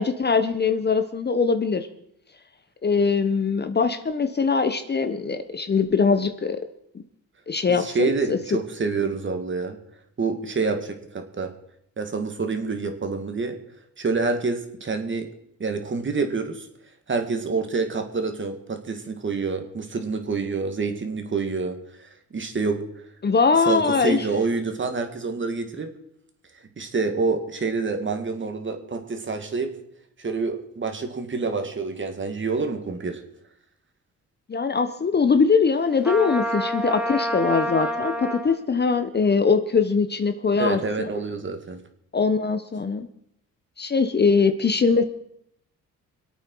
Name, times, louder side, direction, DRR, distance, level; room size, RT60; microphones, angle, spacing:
voice 1, 0.0-1.9 2.8-6.6 7.5-8.6 23.2-24.3 34.5-41.1 42.1-43.1 43.8-45.0, left 5 dB, 30° left, 9 dB, 1.0 m, -22 dB
voice 2, 7.8-9.8 10.2-11.5 12.0-13.6 14.0-15.3 15.6-16.7 17.1-21.8 22.3-22.8 23.6-25.9 26.8-29.7 30.2-33.2 40.6-41.8, right 4 dB, 35° right, 6 dB, 2.3 m, -27 dB
Trumpet, 36.0-38.6, equal, 5° right, 1.7 m, -27 dB
25.0 x 8.8 x 4.7 m, 0.73 s
cardioid pair, 90°, 33 cm